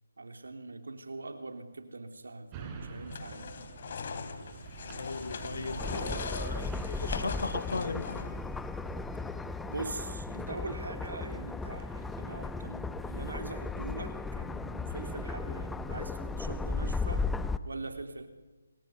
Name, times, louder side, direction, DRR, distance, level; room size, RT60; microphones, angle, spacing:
voice 1, 0.2-3.5 9.7-17.3 17.7-18.3, right 3 dB, 85° right, 7 dB, 3.5 m, -42 dB
sound 1, 2.5-14.0 14.4-14.5, right 6 dB, 25° right, 4.3 m, -48 dB
sound 2, 3.1-8.5, left 5 dB, 50° left, 2.9 m, -40 dB
voice 2, 5.0-8.1, left 4 dB, 75° left, 17 dB, 1.0 m, -37 dB
sound 3, 5.8-17.6, left 3 dB, 5° left, 0.8 m, -36 dB
28.0 x 20.5 x 9.6 m, 1.2 s
hypercardioid pair, 155°, 0 cm